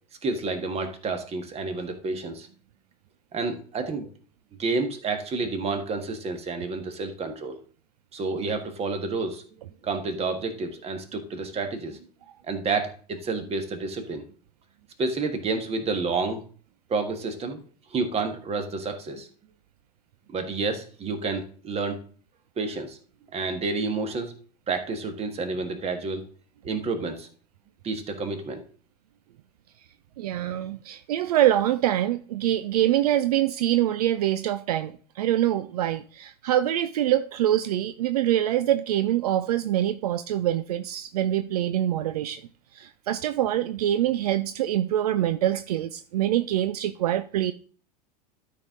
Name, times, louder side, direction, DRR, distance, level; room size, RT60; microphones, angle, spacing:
voice 1, 0.2-2.5 3.3-4.1 4.6-7.6 8.1-9.4 9.8-12.0 12.4-14.2 15.0-16.4 16.9-17.6 17.9-19.3 20.3-22.0 22.6-23.0 23.3-24.3 24.7-26.2 26.6-27.3 27.8-28.6, right 3 dB, 30° right, 1.7 m, -29 dB
voice 2, 30.2-42.4 42.7-47.5, right 12 dB, 70° right, 0.5 m, -25 dB
12.5 x 4.7 x 3.8 m
hypercardioid pair, 85°, 21 cm